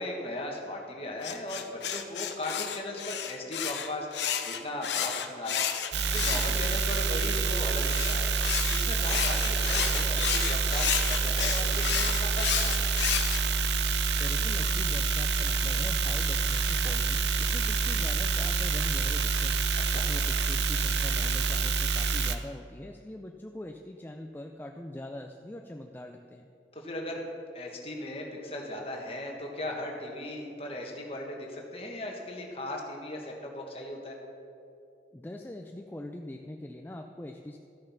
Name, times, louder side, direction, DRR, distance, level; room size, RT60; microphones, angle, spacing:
voice 1, 0.0-4.1 4.4-8.3 8.7-12.9 19.8-20.0 26.7-27.2 27.5-34.2, left 1 dB, 35° left, 0 dB, 1.4 m, -37 dB
sound 1, 1.2-7.1 7.9-13.4, left 9 dB, 85° left, 0.7 m, -31 dB
sound 2, 5.9-22.4, right 4 dB, 80° right, 0.6 m, -27 dB
voice 2, 14.2-19.6 19.9-26.5 35.1-37.6, left 1 dB, 10° left, 3 dB, 0.3 m, -42 dB
13.0 x 6.5 x 5.7 m, 2.7 s
head